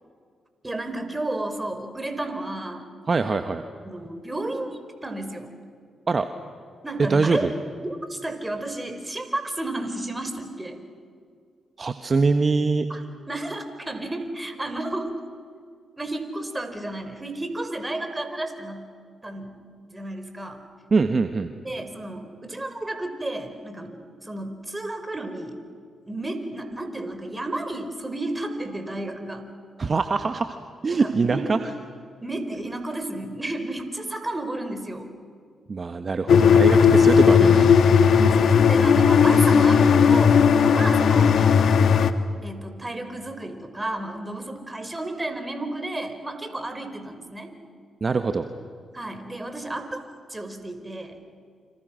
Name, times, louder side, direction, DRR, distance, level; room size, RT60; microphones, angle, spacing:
voice 1, 0.6-2.9 3.8-5.5 6.8-7.5 7.8-10.8 12.9-15.1 16.0-18.9 19.2-19.5 19.9-20.6 21.6-24.0 24.2-25.6 26.0-29.5 30.9-31.5 32.2-35.1 37.0-37.2 38.1-40.4 40.7-41.7 42.4-47.5 48.9-50.0 50.3-51.2, right 1 dB, 20° right, 7 dB, 5.0 m, -32 dB
voice 2, 3.1-3.6 6.1-6.3 7.0-7.5 11.8-12.9 20.9-21.5 29.8-30.5 30.8-31.6 35.7-37.7 48.0-48.4, right 4 dB, 45° right, 8 dB, 1.4 m, -23 dB
sound 1, 36.3-42.1, left 6 dB, 65° left, 1.3 m, -16 dB
29.0 x 27.0 x 6.4 m, 2.1 s
hypercardioid pair, 40°, 0 cm